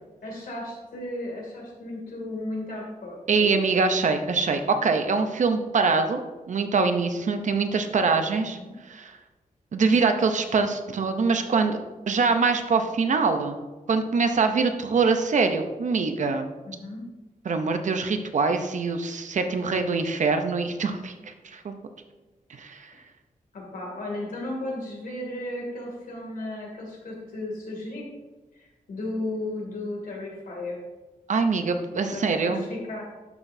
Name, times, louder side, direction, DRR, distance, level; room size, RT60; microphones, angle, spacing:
voice 1, 0.2-3.6 8.5-8.7 16.6-17.0 23.5-28.0 28.5-30.8 32.1-33.1, left 1 dB, 75° left, -2 dB, 2.6 m, -35 dB
voice 2, 3.3-8.6 8.9-9.2 9.7-11.8 12.1-13.6 13.9-16.4 17.5-21.1 21.4-21.7 22.6-22.9 31.3-32.6, right 4 dB, 55° right, 7 dB, 0.7 m, -24 dB
11.5 x 6.0 x 2.7 m, 1.2 s
wide cardioid pair, 180°, 15 cm